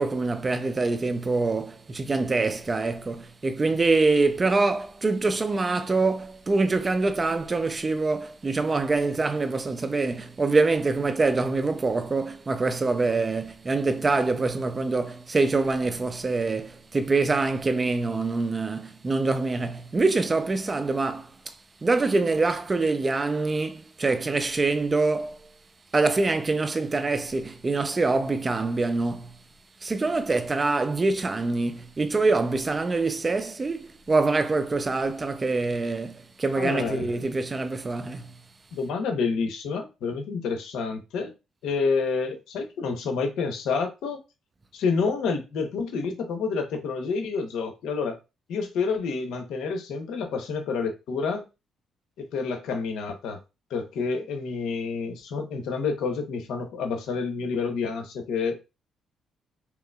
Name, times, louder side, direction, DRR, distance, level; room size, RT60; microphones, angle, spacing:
voice 1, 0.0-21.5 21.8-25.4 25.9-29.4 29.8-38.4, right 3 dB, 30° right, 0.4 m, -25 dB
voice 2, 36.6-37.1 38.7-41.3 41.6-44.2 44.7-48.2 48.5-51.4 52.2-53.4 53.7-58.6, left 5 dB, 85° left, 0.8 m, -28 dB
3.7 x 3.0 x 2.3 m
cardioid pair, 90°, 0 cm